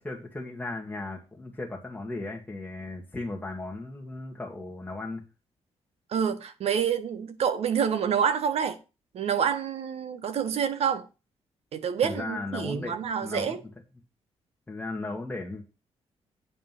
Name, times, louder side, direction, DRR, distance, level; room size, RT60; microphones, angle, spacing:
voice 1, 0.0-5.2 12.0-13.0 13.2-13.6 14.7-15.6, left 2 dB, 15° left, 1.8 m, -36 dB
voice 2, 6.1-8.8 9.1-11.0 11.7-13.6, right 7 dB, 70° right, 1.4 m, -27 dB
9.2 x 5.0 x 7.5 m
cardioid pair, 140°, 11 cm